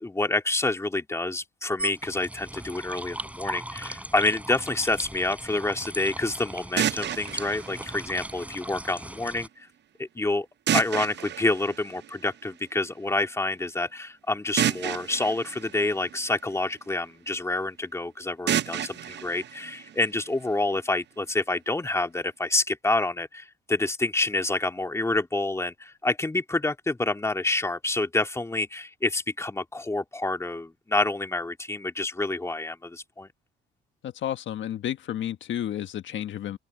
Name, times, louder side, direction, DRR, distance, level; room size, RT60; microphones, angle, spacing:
voice 1, 0.0-9.7 10.0-10.5 10.7-33.3, left 2 dB, 15° left, 2.1 m, -28 dB
sound 1, 1.8-9.5, right 1 dB, 5° right, 5.7 m, -38 dB
sound 2, 6.8-8.8 10.7-12.6 14.6-16.8 18.5-20.5, right 10 dB, 60° right, 0.8 m, -31 dB
voice 2, 34.0-36.6, left 11 dB, 70° left, 1.4 m, -31 dB
open air
cardioid pair, 90°, 20 cm